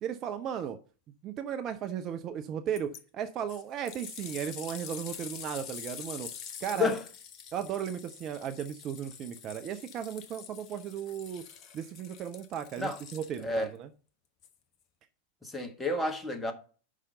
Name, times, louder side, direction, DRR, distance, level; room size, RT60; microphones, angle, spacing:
voice 1, 0.0-0.8 1.2-6.3 6.6-7.0 7.5-11.4 11.7-13.9, right 9 dB, 30° right, 0.5 m, -36 dB
sound 1, 2.8-3.0 3.5-13.6 14.4-14.5, left 8 dB, 35° left, 0.9 m, -46 dB
voice 2, 15.4-16.5, left 3 dB, 5° left, 1.3 m, -30 dB
5.7 x 4.9 x 6.4 m
figure-of-eight pair, 90°, 0 cm